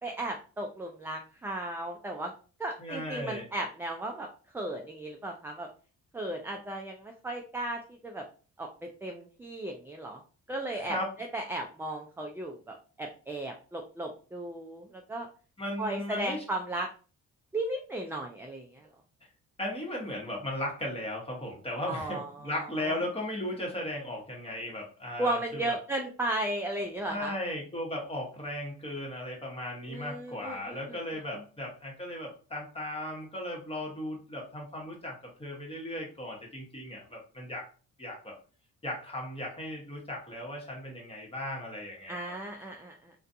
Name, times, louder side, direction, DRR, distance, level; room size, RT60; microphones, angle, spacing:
voice 1, 0.0-2.3 2.6-4.3 4.5-5.7 6.1-8.2 8.6-8.7 9.0-10.2 10.5-11.0 11.3-15.3 15.8-16.9 17.5-18.9 21.9-22.5 22.9-23.0 25.2-27.3 29.9-31.0 42.1-43.1, right 1 dB, 10° right, 2 dB, 0.3 m, -35 dB
voice 2, 2.8-3.5 10.7-11.1 15.6-16.4 19.6-25.8 27.1-37.7 38.0-38.4 38.8-42.4, left 1 dB, 20° left, -1 dB, 1.1 m, -36 dB
2.4 x 2.2 x 2.6 m, 0.37 s
cardioid pair, 90°, 30 cm